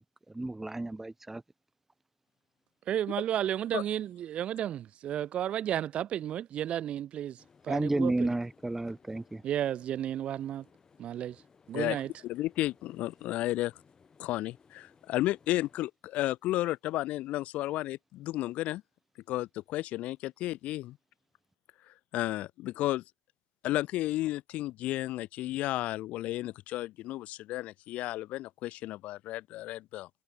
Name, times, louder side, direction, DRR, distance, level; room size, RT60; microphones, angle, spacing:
voice 1, 0.3-1.4 7.7-9.4, right 2 dB, 10° right, 0.9 m, -31 dB
voice 2, 2.9-7.4 7.6-8.3 9.4-10.6 11.0-11.4 11.7-12.1, right 11 dB, 50° right, 0.5 m, -32 dB
sound 1, 7.4-15.9, left 5 dB, 30° left, 5.2 m, -62 dB
voice 3, 11.7-13.7 14.2-18.8 19.3-21.0 21.9-23.0 23.6-30.1, left 16 dB, 60° left, 0.6 m, -33 dB
hypercardioid pair, 80°, 3 cm